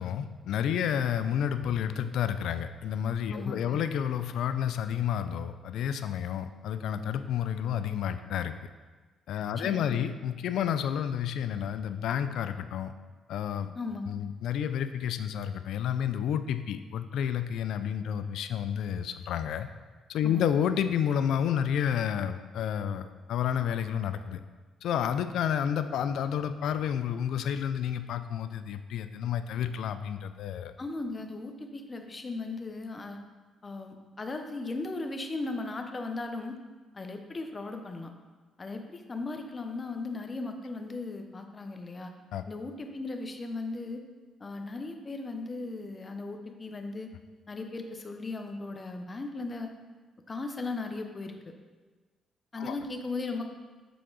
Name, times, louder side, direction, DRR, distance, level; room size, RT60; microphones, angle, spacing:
voice 1, 0.0-8.5 9.3-12.9 13.3-13.7 14.1-19.7 20.1-24.4 24.8-30.7 42.3-42.4 52.6-52.7, left 9 dB, 80° left, 10 dB, 0.3 m, -30 dB
voice 2, 3.3-3.8 9.6-10.1 13.7-14.3 20.2-20.5 30.8-33.2 33.6-36.6 36.9-38.1 38.6-42.1 42.5-44.0 44.4-47.1 47.5-49.7 50.3-51.4 52.5-53.5, left 3 dB, 30° left, 5 dB, 0.6 m, -37 dB
6.8 x 3.7 x 3.8 m, 1.3 s
cardioid pair, 90°, 0 cm